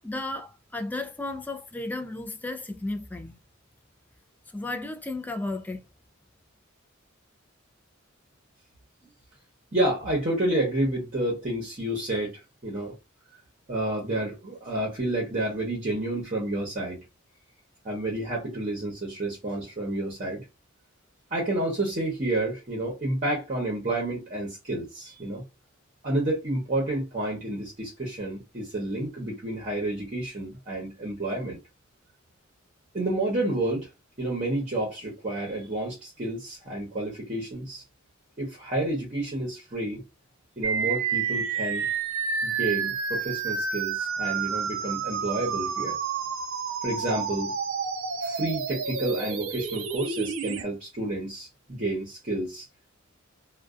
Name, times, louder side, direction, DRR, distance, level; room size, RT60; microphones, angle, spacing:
voice 1, 0.0-3.3 4.5-5.8, left 2 dB, 10° left, 0.3 m, -34 dB
voice 2, 9.7-12.9 13.7-17.0 17.8-20.4 21.3-25.4 26.0-31.6 32.9-33.9 34.2-37.8 38.4-40.0 40.6-41.9 42.4-46.0 46.8-47.5 48.2-52.6, right 1 dB, 40° right, 0.8 m, -30 dB
sound 1, 40.6-50.6, right 6 dB, 70° right, 0.4 m, -30 dB
2.5 x 2.2 x 2.4 m
head